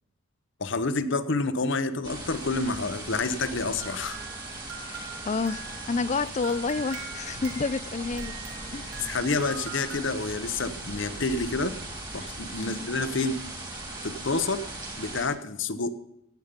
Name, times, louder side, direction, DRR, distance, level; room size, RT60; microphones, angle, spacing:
voice 1, 0.6-4.2 9.0-11.7 12.1-13.4 14.0-14.6 15.0-16.0, left 3 dB, 60° left, 12 dB, 0.9 m, -28 dB
sound 1, 2.0-15.3, right 2 dB, 20° right, 3.0 m, -39 dB
sound 2, 3.8-10.0, right 6 dB, 85° right, 1.8 m, -43 dB
voice 2, 4.9-8.3 8.7-9.2 12.6-12.9, left 4 dB, 35° left, 18 dB, 0.4 m, -30 dB
16.0 x 8.3 x 5.2 m, 0.79 s
head